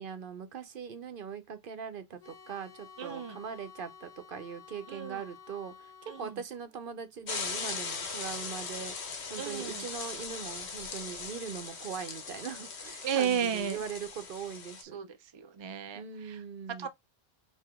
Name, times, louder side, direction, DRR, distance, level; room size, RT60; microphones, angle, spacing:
voice 1, 0.0-8.9 9.3-15.0 15.9-16.9, right 6 dB, 60° right, 0.9 m, -41 dB
sound 1, 2.2-6.4, left 6 dB, 65° left, 1.5 m, -52 dB
voice 2, 3.0-3.4 4.9-5.2 6.1-6.4 9.4-9.8 13.0-13.8 14.9-16.4 16.8-16.9, right 8 dB, 45° right, 0.4 m, -34 dB
sound 2, 7.3-14.8, left 5 dB, 85° left, 1.3 m, -39 dB
4.7 x 2.9 x 3.5 m
omnidirectional pair, 1.1 m